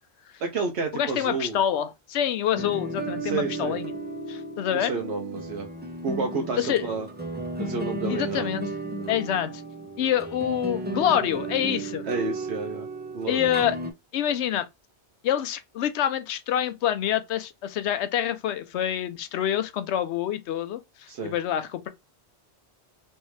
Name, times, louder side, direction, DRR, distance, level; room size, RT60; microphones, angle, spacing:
voice 1, 0.4-1.6 3.2-3.8 4.7-5.7 6.0-7.1 7.6-8.5 9.0-9.1 12.1-12.9 13.1-13.4 21.1-21.3, right 4 dB, 75° right, 0.9 m, -30 dB
voice 2, 0.9-3.9 4.3-4.9 6.6-6.9 8.1-8.7 9.1-9.6 10.0-12.0 13.3-13.8 14.1-14.7 15.2-21.9, left 10 dB, 80° left, 0.9 m, -26 dB
sound 1, 2.6-13.9, right 2 dB, 10° right, 0.5 m, -34 dB
3.2 x 2.7 x 3.1 m
omnidirectional pair, 1.2 m